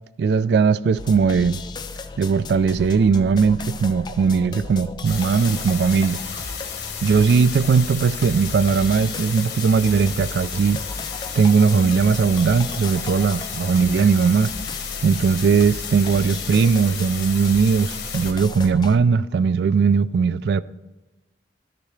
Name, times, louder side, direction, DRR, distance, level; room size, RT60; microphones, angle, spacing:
voice 1, 0.2-1.6 2.2-6.4 7.0-10.8 11.4-14.5 15.0-20.6, right 5 dB, 65° right, 0.3 m, -19 dB
sound 1, 1.0-19.0, left 3 dB, 25° left, 0.3 m, -35 dB
sound 2, 5.0-18.3, left 7 dB, 70° left, 1.2 m, -33 dB
12.0 x 6.7 x 3.2 m
head